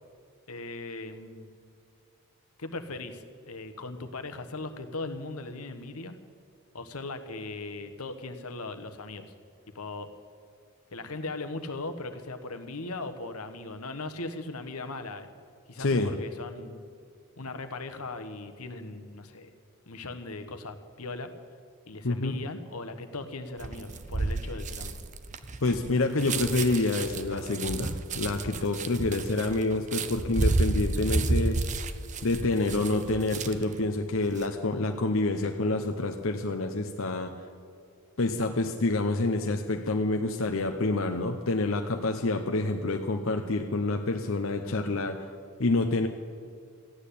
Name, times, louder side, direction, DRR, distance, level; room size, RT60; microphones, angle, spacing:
voice 1, 0.5-1.5 2.6-6.2 6.7-9.3 9.7-10.1 10.9-15.3 15.7-16.8 17.4-19.5 19.9-21.3 21.9-25.0, left 2 dB, 85° left, 8 dB, 1.2 m, -38 dB
voice 2, 15.8-16.1 22.0-22.4 25.6-31.6 32.2-37.3 38.2-45.2 45.6-46.1, left 2 dB, 65° left, 5 dB, 0.8 m, -27 dB
sound 1, 23.6-33.8 34.2-34.5, right 3 dB, 35° right, 0.6 m, -31 dB
14.5 x 10.0 x 8.4 m, 2.3 s
head